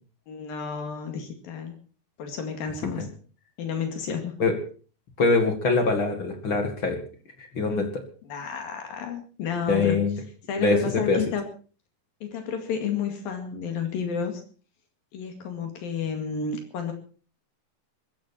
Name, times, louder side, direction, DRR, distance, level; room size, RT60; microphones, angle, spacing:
voice 1, 0.3-1.8 2.2-3.1 3.6-4.4 8.3-10.0 10.5-11.4 12.2-14.4 15.1-16.9, left 6 dB, 75° left, 5 dB, 3.9 m, -31 dB
voice 2, 5.2-7.0 7.4-8.0 9.7-10.2 10.6-11.2, left 3 dB, 40° left, 6 dB, 2.6 m, -23 dB
22.0 x 14.5 x 4.4 m, 0.39 s
omnidirectional pair, 4.2 m